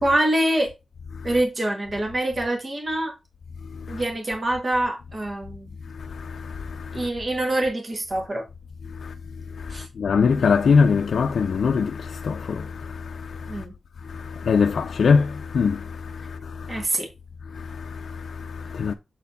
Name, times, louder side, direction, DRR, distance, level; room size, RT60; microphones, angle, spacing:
voice 1, 0.0-0.7 1.2-3.1 3.9-5.7 6.9-8.5 9.7-9.9 13.5-13.7 16.7-17.1, right 1 dB, 35° right, 1.8 m, -25 dB
voice 2, 6.0-7.1 9.0-9.1 9.6-13.6 14.1-16.8 17.5-18.9, left 5 dB, 70° left, 0.5 m, -23 dB
7.4 x 4.2 x 4.1 m
wide cardioid pair, 120°, 0 cm